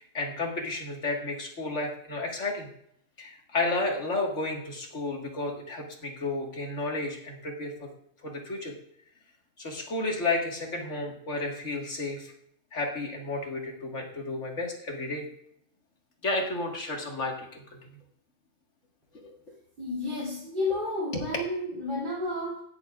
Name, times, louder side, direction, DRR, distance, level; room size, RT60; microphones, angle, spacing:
voice 1, 0.0-2.7 3.2-7.9 8.2-8.7 9.6-12.3 12.7-15.3 16.2-18.0 19.2-19.3 20.7-20.8 21.1-21.2, left 2 dB, 70° left, 0 dB, 2.2 m, -32 dB
voice 2, 19.8-22.6, left 2 dB, 45° right, -8 dB, 3.0 m, -31 dB
20.0 x 7.0 x 2.4 m, 0.70 s
omnidirectional pair, 1.3 m